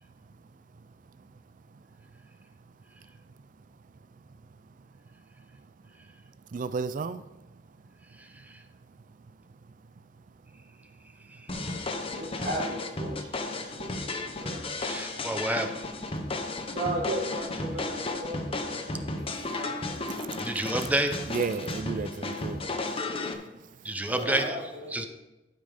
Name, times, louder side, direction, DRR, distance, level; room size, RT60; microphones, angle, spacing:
voice 1, 6.5-7.2 21.3-22.6, right 4 dB, 45° right, 12 dB, 0.4 m, -32 dB
sound 1, 11.5-23.3, left 2 dB, 30° left, 0.9 m, -34 dB
voice 2, 12.1-14.8 16.7-20.1 24.0-25.1, right 1 dB, 80° right, -5 dB, 1.9 m, -36 dB
voice 3, 14.8-15.7 20.4-21.1 23.8-24.5 24.9-25.0, right 1 dB, 10° right, 6 dB, 0.7 m, -28 dB
12.5 x 5.4 x 5.0 m, 1.0 s
head